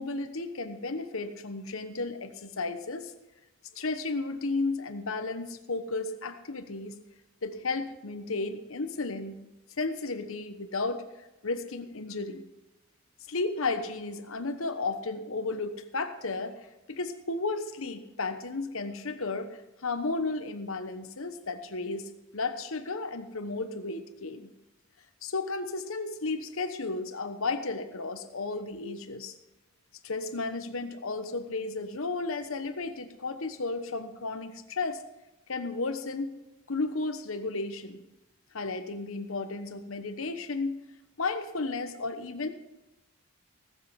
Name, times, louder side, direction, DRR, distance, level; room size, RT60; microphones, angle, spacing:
voice 1, 0.0-3.1 3.7-6.9 7.4-9.4 9.8-12.5 13.3-16.6 16.9-24.5 25.2-29.3 30.0-35.0 35.5-36.3 36.7-38.0 38.5-40.8 41.2-42.5, left 3 dB, 65° left, 9 dB, 1.1 m, -33 dB
18.0 x 7.6 x 5.8 m, 0.96 s
head